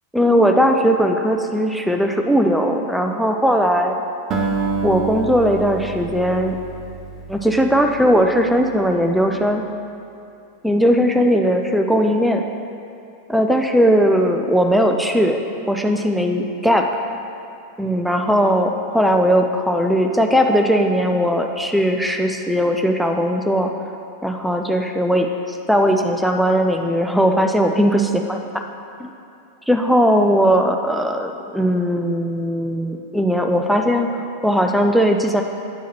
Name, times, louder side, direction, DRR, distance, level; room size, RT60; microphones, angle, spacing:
voice 1, 0.1-3.9 4.8-6.6 7.3-9.6 10.6-12.4 13.3-15.4 15.7-17.0 17.8-23.7 24.2-28.7 29.0-29.1 29.7-35.4, equal, ahead, 3 dB, 0.3 m, -18 dB
Acoustic guitar, 4.3-8.8, right 4 dB, 30° right, 0.7 m, -28 dB
8.7 x 4.6 x 3.0 m, 2.6 s
figure-of-eight pair, 90°, 0 cm